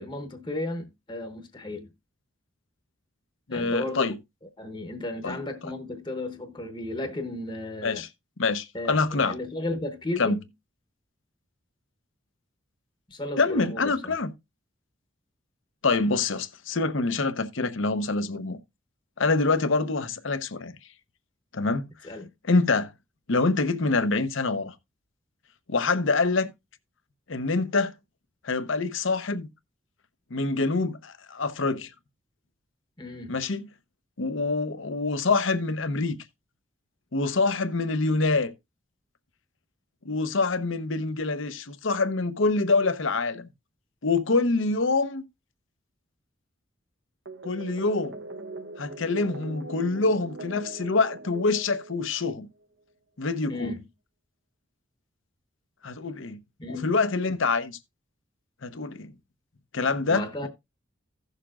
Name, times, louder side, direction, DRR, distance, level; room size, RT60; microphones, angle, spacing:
voice 1, 0.0-1.9 3.5-4.1 4.6-8.1 8.7-10.5 13.1-14.2 22.0-22.3 33.0-33.3 53.5-53.8 56.6-56.9 60.1-60.5, left 2 dB, 25° left, 0.9 m, -34 dB
voice 2, 3.5-4.1 5.2-5.4 7.8-8.1 8.4-9.3 10.2-10.4 13.4-14.3 15.8-18.6 19.2-20.7 21.5-21.9 22.5-22.9 23.3-24.7 25.7-26.5 27.3-27.9 28.4-29.5 30.3-31.9 33.3-33.7 34.2-36.2 37.1-38.5 40.0-43.5 44.0-45.2 47.4-48.2 48.8-52.5 53.2-53.7 55.8-56.4 56.7-57.8 58.6-59.1 59.7-60.5, left 3 dB, 75° left, 0.8 m, -25 dB
sound 1, 47.3-52.4, right 2 dB, 65° right, 0.8 m, -41 dB
16.0 x 6.6 x 2.4 m
head